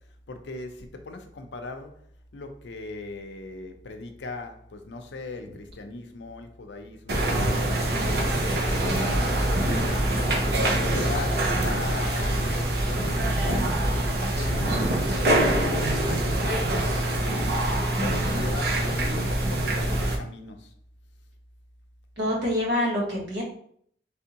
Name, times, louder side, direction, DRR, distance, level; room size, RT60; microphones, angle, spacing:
voice 1, 0.3-1.9 2.3-8.2 8.5-10.1 10.8-13.8 14.2-17.5 18.0-20.7, left 3 dB, 80° left, 0.5 m, -39 dB
sound 1, 7.1-20.2, right 1 dB, 60° right, 0.7 m, -24 dB
voice 2, 8.7-9.1 17.9-18.6 22.2-23.4, left 1 dB, 80° right, 1.3 m, -28 dB
3.4 x 3.4 x 2.9 m
head